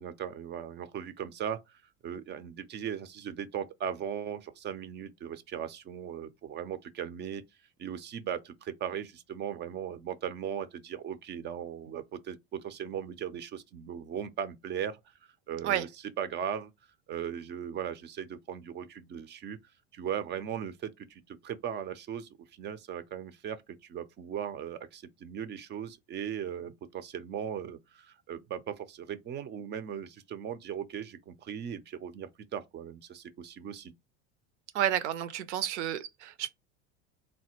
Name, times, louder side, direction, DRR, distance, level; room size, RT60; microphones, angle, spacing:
voice 1, 0.0-7.4 7.8-15.0 15.5-15.9 16.2-16.7 17.1-19.6 19.9-22.3 22.6-23.6 23.9-33.9, right 8 dB, 30° right, 0.4 m, -38 dB
voice 2, 34.7-36.5, right 11 dB, 75° right, 0.6 m, -30 dB
3.2 x 2.1 x 2.9 m
hypercardioid pair, 85°, 35 cm